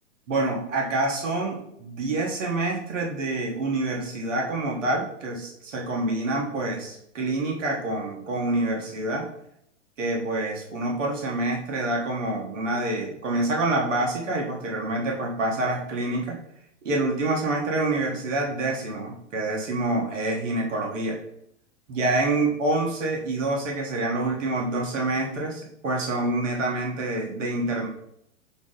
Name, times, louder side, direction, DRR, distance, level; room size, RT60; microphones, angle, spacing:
voice 1, 0.3-9.3 10.0-16.4 16.8-21.2 21.9-27.9, right 2 dB, 75° right, -1 dB, 1.2 m, -27 dB
6.1 x 2.0 x 3.7 m, 0.73 s
hypercardioid pair, 120°, 37 cm